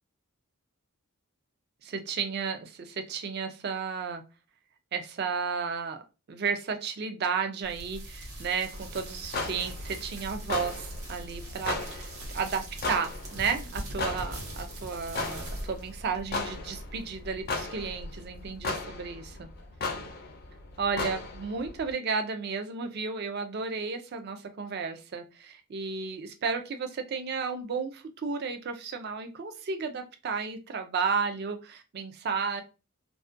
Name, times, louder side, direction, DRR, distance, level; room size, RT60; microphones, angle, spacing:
voice 1, 1.8-4.2 4.9-6.0 6.3-19.5 20.8-32.6, right 5 dB, 50° right, 7 dB, 0.4 m, -33 dB
sound 1, 7.6-18.6, right 1 dB, 90° right, 0.8 m, -42 dB
sound 2, 8.7-21.9, left 3 dB, 45° left, 0.4 m, -37 dB
2.3 x 2.1 x 2.5 m, 0.29 s
head